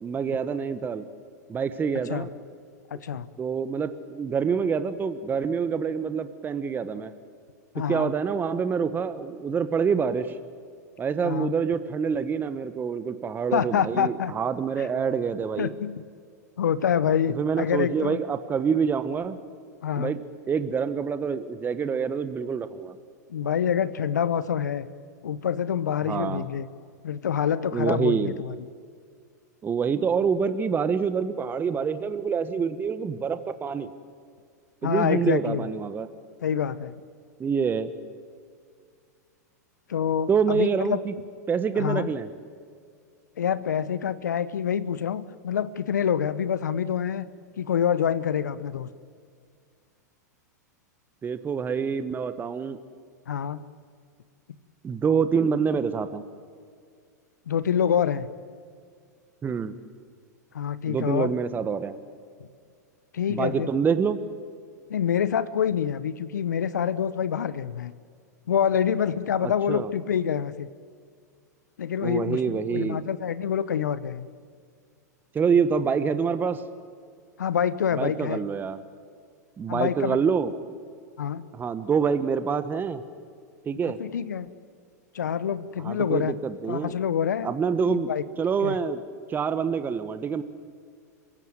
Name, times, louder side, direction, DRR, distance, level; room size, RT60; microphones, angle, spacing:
voice 1, 0.0-1.0 1.5-2.3 3.4-7.1 7.9-10.4 11.0-15.7 17.4-19.4 20.0-20.2 20.5-22.9 26.1-26.5 27.7-28.3 29.6-33.9 34.8-36.1 37.4-37.9 40.3-41.1 41.5-42.3 51.2-52.8 54.8-56.2 59.4-59.7 60.8-61.9 63.3-64.2 69.4-69.9 72.0-73.0 75.3-76.6 77.9-78.8 79.6-80.5 81.5-83.0 83.6-84.0 85.8-86.9 87.4-88.1 88.4-89.0 89.3-90.4, right 6 dB, 20° right, 12 dB, 1.2 m, -26 dB
voice 2, 2.9-3.3 7.7-8.1 11.2-11.5 13.5-14.3 14.8-14.9 15.6-16.0 16.6-18.2 19.8-20.1 23.3-24.9 25.2-26.7 27.0-28.5 34.8-35.7 36.4-36.9 39.9-41.0 41.7-42.1 43.4-47.3 47.6-48.9 53.3-53.7 57.5-58.3 60.5-61.3 63.1-63.7 64.9-67.9 68.5-70.7 71.8-74.3 77.4-78.4 79.7-80.2 81.2-81.4 83.8-84.5 85.1-86.3 86.7-87.5 87.8-88.2 88.6-88.8, left 8 dB, 75° left, 16 dB, 1.0 m, -26 dB
27.5 x 16.5 x 9.4 m, 2.1 s
hypercardioid pair, 100°, 10 cm